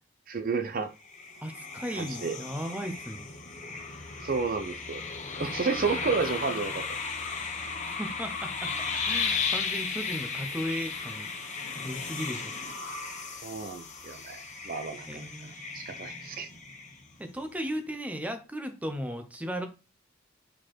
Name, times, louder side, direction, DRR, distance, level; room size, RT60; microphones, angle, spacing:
voice 1, 0.3-0.9 2.0-2.4 4.2-5.0 5.4-7.0 13.4-15.3 15.7-16.5, right 4 dB, 45° right, 0.7 m, -31 dB
sound 1, 1.0-17.3, left 5 dB, 35° left, 1.2 m, -35 dB
voice 2, 1.4-3.3 7.8-8.7 9.0-11.3 11.8-12.6 15.1-15.6 17.2-19.7, equal, 10° right, 0.9 m, -36 dB
5.2 x 4.6 x 4.4 m
head